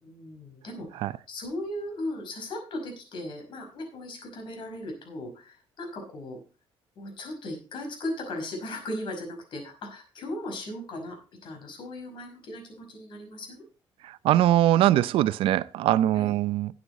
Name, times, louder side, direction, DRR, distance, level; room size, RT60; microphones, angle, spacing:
voice 1, 0.0-6.4 7.0-13.6 16.1-16.4, left 1 dB, 60° left, 5.4 m, -37 dB
voice 2, 14.2-16.7, right 13 dB, 75° right, 0.6 m, -22 dB
13.0 x 8.7 x 4.1 m
cardioid pair, 105°, 9 cm